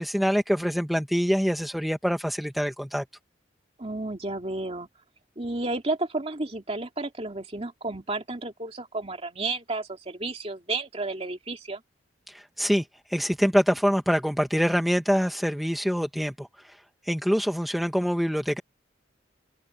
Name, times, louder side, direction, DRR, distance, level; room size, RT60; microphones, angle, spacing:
voice 1, 0.0-3.0 12.3-16.8 17.0-18.6, equal, ahead, 0.9 m, -25 dB
voice 2, 3.8-4.9 5.4-11.8, right 2 dB, 30° right, 2.4 m, -32 dB
head